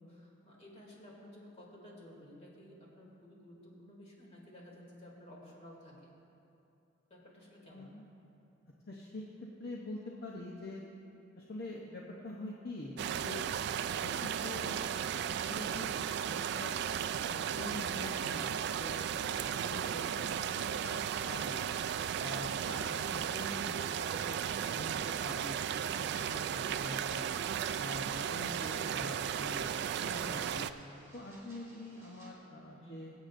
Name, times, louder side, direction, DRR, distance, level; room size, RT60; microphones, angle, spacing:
voice 1, 0.0-6.1 7.1-7.9 22.3-22.6 32.8-33.1, left 1 dB, 35° left, -4 dB, 2.6 m, -54 dB
voice 2, 7.7-8.1 8.9-9.2 9.6-10.8 11.4-13.5 14.0-14.8 15.1-15.9 16.2-16.7 17.3-19.0 19.4-21.0 21.3-21.7 22.1-25.6 26.0-27.4 27.8-30.7 31.1-33.1, left 2 dB, 55° left, -2 dB, 0.8 m, -45 dB
sound 1, 13.0-30.7, right 8 dB, 60° right, 0.3 m, -35 dB
sound 2, 26.6-32.3, right 2 dB, 15° right, 2.0 m, -58 dB
24.0 x 8.2 x 2.5 m, 2.7 s
head